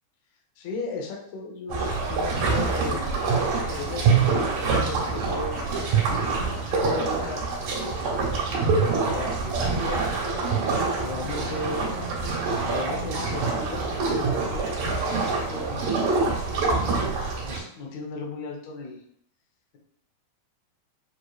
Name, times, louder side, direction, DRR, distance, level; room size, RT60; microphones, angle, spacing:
voice 1, 0.6-5.9 6.5-10.2 10.9-11.8 12.6-17.1 17.4-19.0, left 3 dB, 65° left, -1 dB, 1.8 m, -37 dB
sound 1, 1.7-17.6, right 4 dB, 90° right, 2.8 m, -25 dB
7.7 x 2.7 x 2.4 m, 0.70 s
omnidirectional pair, 3.6 m